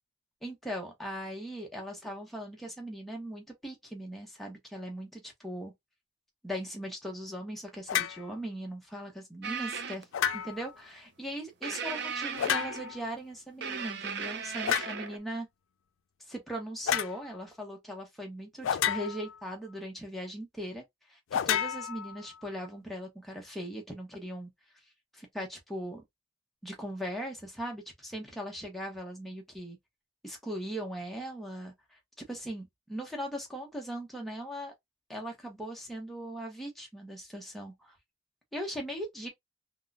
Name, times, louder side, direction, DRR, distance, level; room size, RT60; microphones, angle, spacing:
voice 1, 0.4-5.7 6.4-10.0 10.3-15.5 16.3-20.8 21.1-24.5 25.1-26.0 26.6-29.8 30.2-32.0 32.3-34.7 35.1-38.0 38.5-39.3, equal, ahead, 0.9 m, -39 dB
sound 1, 7.9-8.2 10.1-10.7 12.4-13.0 14.7-15.0 16.9-17.2 18.6-19.4 21.3-22.4, left 9 dB, 85° left, 0.4 m, -30 dB
sound 2, 9.4-10.0 11.6-13.1 13.6-15.2, right 6 dB, 60° right, 0.6 m, -37 dB
3.6 x 2.3 x 2.4 m
head